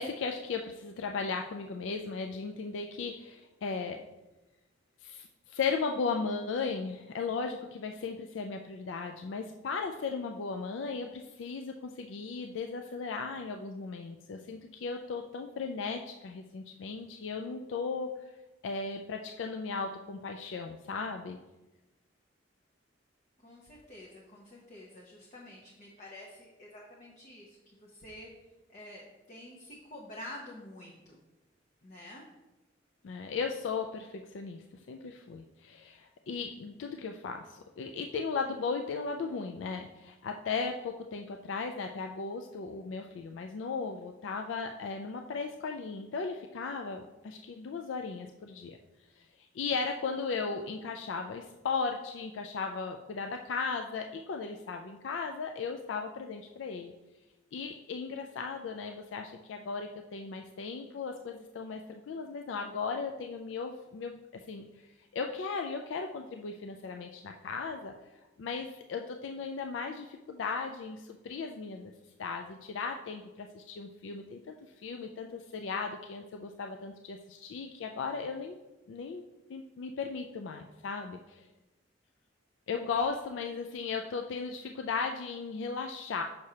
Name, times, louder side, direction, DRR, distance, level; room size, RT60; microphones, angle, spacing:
voice 1, 0.0-4.0 5.0-18.1 18.6-21.4 33.0-48.8 49.4-56.9 57.5-64.6 65.1-67.9 68.4-71.9 72.2-74.5 74.8-78.6 78.9-79.2 79.5-81.5 82.7-86.2, left 4 dB, 75° left, 4 dB, 0.4 m, -36 dB
voice 2, 23.4-28.3 28.7-31.2 31.8-32.2 83.0-83.1, left 1 dB, 40° left, -2 dB, 0.8 m, -48 dB
6.4 x 6.0 x 2.8 m, 1.0 s
head